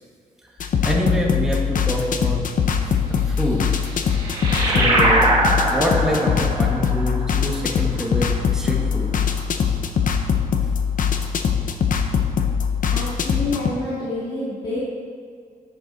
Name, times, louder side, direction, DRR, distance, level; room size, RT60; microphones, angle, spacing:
sound 1, 0.6-13.7, left 7 dB, 60° left, 0.7 m, -22 dB
voice 1, 0.8-2.4 2.9-3.7 4.6-5.3 5.6-9.1 9.6-9.8, equal, 5° right, -3 dB, 1.3 m, -26 dB
sound 2, 3.5-8.6, right 2 dB, 25° right, 2.0 m, -22 dB
voice 2, 12.9-14.8, left 2 dB, 30° left, -10 dB, 2.3 m, -28 dB
10.0 x 7.9 x 4.0 m, 2.2 s
wide cardioid pair, 180°, 15 cm